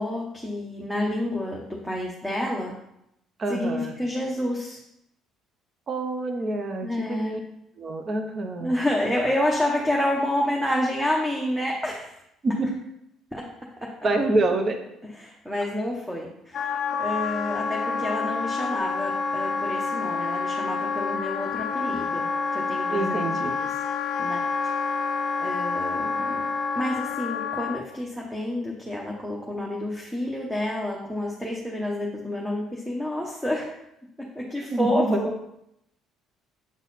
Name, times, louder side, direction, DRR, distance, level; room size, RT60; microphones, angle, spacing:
voice 1, 0.0-2.7 3.5-4.8 6.8-7.4 8.6-12.2 13.3-13.4 15.2-23.5 24.2-24.4 25.4-26.4 26.7-33.7 34.3-35.3, left 1 dB, 5° right, -2 dB, 0.9 m, -29 dB
voice 2, 3.4-3.9 5.9-7.4 7.8-8.7 12.4-12.7 14.0-14.8 22.9-23.6 34.7-35.2, right 2 dB, 35° right, 5 dB, 0.7 m, -26 dB
Wind instrument woodwind instrument, 16.5-27.8, left 4 dB, 45° left, 0.5 m, -28 dB
7.3 x 3.9 x 4.1 m, 0.80 s
cardioid pair, 130°, 0 cm